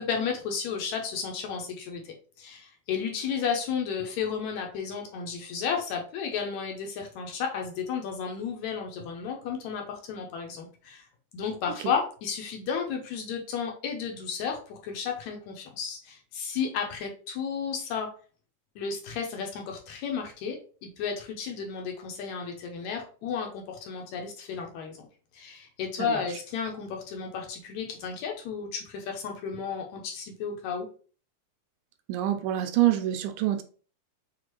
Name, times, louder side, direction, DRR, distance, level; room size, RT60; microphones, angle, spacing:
voice 1, 0.0-11.1 11.3-18.1 18.8-25.0 25.3-30.9, left 6 dB, 75° left, 1.8 m, -33 dB
voice 2, 32.1-33.6, right 13 dB, 90° right, 2.3 m, -26 dB
6.2 x 2.4 x 3.0 m
omnidirectional pair, 3.7 m